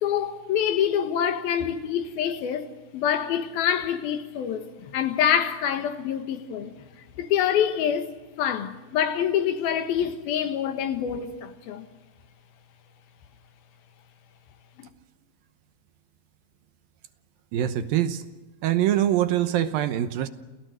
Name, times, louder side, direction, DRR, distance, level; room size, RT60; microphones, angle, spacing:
voice 1, 0.0-6.7 7.2-8.1 8.4-11.9 14.8-14.9, left 9 dB, 75° left, 3.2 m, -26 dB
voice 2, 17.5-18.2 18.6-20.3, right 12 dB, 75° right, 2.6 m, -24 dB
29.0 x 16.5 x 7.9 m
omnidirectional pair, 4.5 m